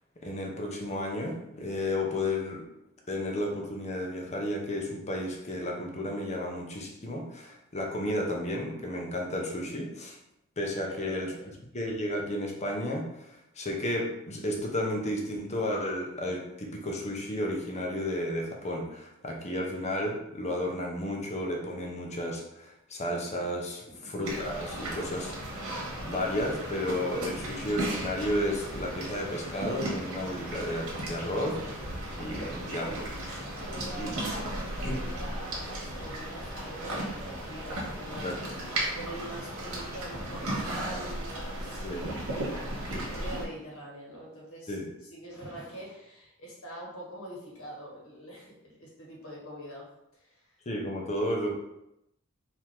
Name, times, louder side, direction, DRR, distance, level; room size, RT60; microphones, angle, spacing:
voice 1, 0.2-2.6 3.1-10.2 10.6-11.3 11.7-25.7 26.0-31.6 32.1-33.0 33.2-33.5 34.0-34.1 34.8-35.0 38.2-38.4 41.8-42.0 44.7-44.9 50.7-51.5, left 1 dB, 30° left, 0 dB, 0.8 m, -32 dB
voice 2, 10.9-11.5 23.8-24.1 33.5-38.4 38.9-49.9 50.2-50.5, right 1 dB, 70° left, -3 dB, 1.6 m, -44 dB
sound 1, 24.2-43.5, right 1 dB, 90° right, 1.5 m, -36 dB
4.7 x 2.9 x 3.7 m, 0.85 s
head